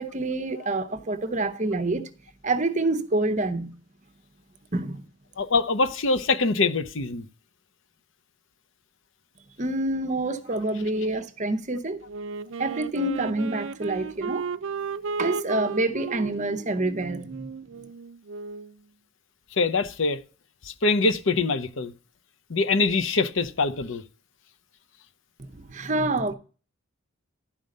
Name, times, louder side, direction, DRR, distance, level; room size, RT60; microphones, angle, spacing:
voice 1, 0.0-2.1 2.4-3.7 4.7-5.0 9.6-12.0 12.6-14.5 15.2-17.5 25.4-26.3, right 2 dB, 35° right, 0.9 m, -27 dB
voice 2, 5.4-7.3 19.6-20.2 20.7-21.9 22.5-24.0, left 3 dB, 65° left, 0.8 m, -24 dB
Wind instrument woodwind instrument, 12.1-18.8, right 5 dB, 60° right, 0.5 m, -34 dB
11.5 x 5.5 x 6.5 m
head